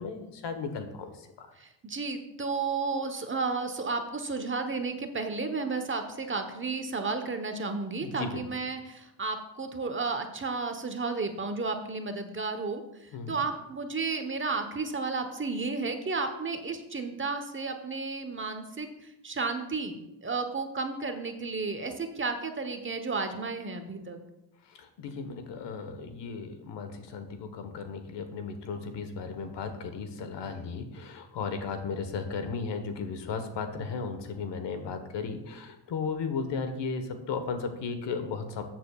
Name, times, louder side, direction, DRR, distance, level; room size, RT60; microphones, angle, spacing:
voice 1, 0.0-1.5 8.0-8.4 13.1-13.4 24.7-38.6, left 5 dB, 60° left, 8 dB, 1.4 m, -35 dB
voice 2, 1.6-24.2, right 4 dB, 25° right, 7 dB, 1.1 m, -33 dB
13.5 x 7.7 x 2.4 m, 0.90 s
supercardioid pair, 75°, 47 cm